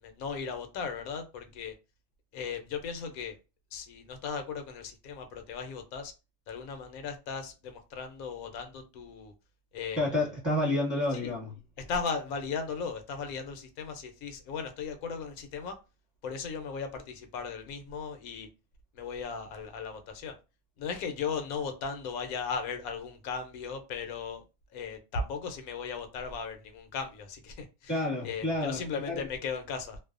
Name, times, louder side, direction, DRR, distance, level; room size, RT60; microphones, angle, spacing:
voice 1, 0.0-1.8 2.3-3.4 3.7-6.1 6.5-9.3 9.7-10.0 11.1-11.4 11.8-15.7 16.2-18.5 18.9-20.3 20.8-24.4 24.7-30.0, left 5 dB, 80° left, 1.0 m, -37 dB
voice 2, 10.0-11.5 27.9-29.3, left 1 dB, 20° right, 0.9 m, -30 dB
2.6 x 2.1 x 2.4 m
omnidirectional pair, 1.5 m